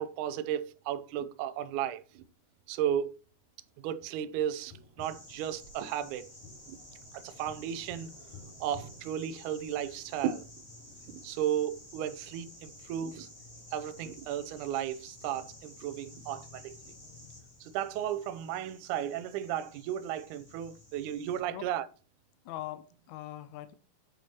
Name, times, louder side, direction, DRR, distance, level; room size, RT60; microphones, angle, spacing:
voice 1, 0.0-2.2 2.7-3.1 3.8-6.3 6.7-6.8 7.1-8.1 8.6-10.5 11.1-13.3 13.7-16.9 17.6-21.9, right 10 dB, 75° right, 1.9 m, -34 dB
sound 1, 2.4-18.6, right 1 dB, 30° right, 3.9 m, -63 dB
Tap, 4.7-10.0 12.6-12.7, left 2 dB, 65° left, 3.5 m, -54 dB
sound 2, 5.0-21.4, left 1 dB, 10° left, 2.9 m, -52 dB
voice 2, 22.4-23.7, left 14 dB, 80° left, 1.6 m, -41 dB
9.2 x 7.0 x 4.4 m
omnidirectional pair, 4.1 m